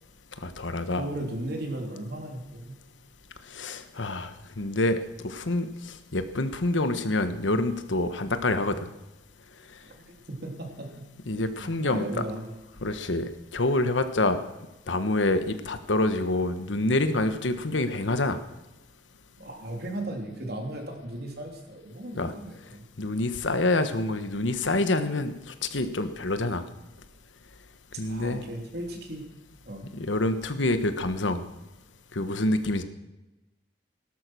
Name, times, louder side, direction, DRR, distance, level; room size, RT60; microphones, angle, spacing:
voice 1, 0.4-1.0 3.5-4.3 4.6-5.7 6.1-8.8 11.3-12.2 12.8-14.4 14.9-18.4 22.1-22.3 23.0-26.6 28.0-28.4 29.9-31.4 32.1-32.8, left 2 dB, 85° left, 10 dB, 1.3 m, -27 dB
voice 2, 0.9-2.8 9.8-12.5 19.4-22.8 28.0-29.3 29.7-29.8, right 1 dB, 60° right, 2 dB, 3.3 m, -36 dB
17.0 x 12.0 x 6.2 m, 1.0 s
head